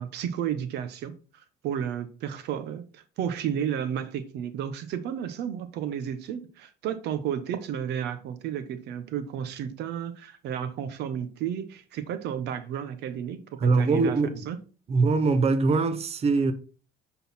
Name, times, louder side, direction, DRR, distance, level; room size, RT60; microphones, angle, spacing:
voice 1, 0.0-14.2 14.5-14.6, right 9 dB, 80° right, 1.0 m, -32 dB
voice 2, 13.6-14.5 14.9-16.5, right 4 dB, 35° right, 0.9 m, -22 dB
9.3 x 4.0 x 4.2 m
cardioid pair, 110°, 17 cm